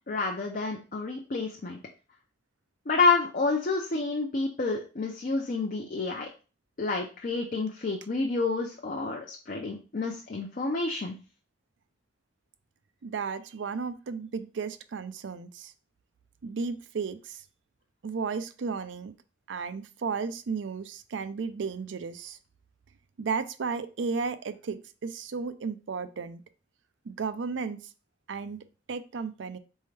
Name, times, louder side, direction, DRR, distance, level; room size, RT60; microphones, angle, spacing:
voice 1, 0.1-1.8 2.9-6.3 6.8-11.2, left 3 dB, 45° left, 0 dB, 0.6 m, -29 dB
voice 2, 13.0-15.7 16.4-17.4 18.0-19.1 19.5-22.4 23.2-26.4 27.1-27.8 28.3-29.6, right 5 dB, 80° right, 12 dB, 0.4 m, -34 dB
4.2 x 3.6 x 3.2 m, 0.34 s
head